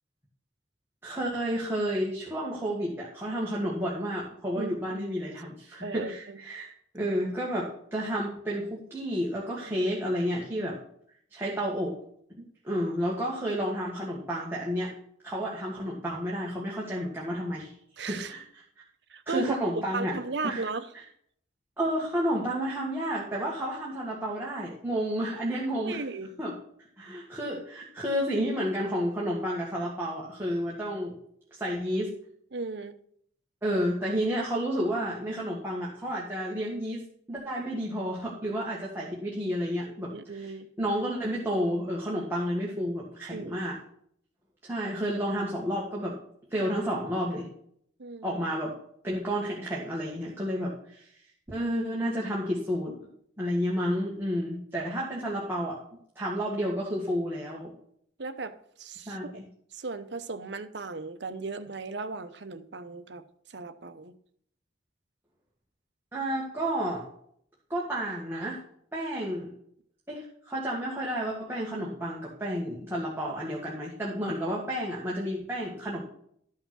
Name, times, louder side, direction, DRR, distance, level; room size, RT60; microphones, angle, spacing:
voice 1, 1.0-10.8 11.3-11.9 12.3-14.9 15.2-17.7 18.1-18.6 19.3-20.2 20.4-20.6 20.9-21.0 21.8-26.0 26.4-26.5 27.0-31.2 31.6-32.1 33.6-43.8 44.6-46.2 46.5-47.5 48.2-48.7 49.0-51.1 51.5-52.9 53.4-55.8 56.2-57.7 59.1-59.4 66.1-67.0 67.7-68.6 68.9-69.5 70.1-76.0, equal, 10° right, -5 dB, 1.7 m, -31 dB
voice 2, 4.6-5.0 5.8-6.4 9.7-9.9 18.0-18.3 19.1-20.9 25.8-26.3 32.5-32.9 39.9-40.7 43.3-43.8 48.0-48.4 58.2-59.3 59.7-63.2 63.5-64.1, right 3 dB, 65° right, 11 dB, 0.8 m, -36 dB
12.5 x 5.7 x 6.1 m, 0.66 s
head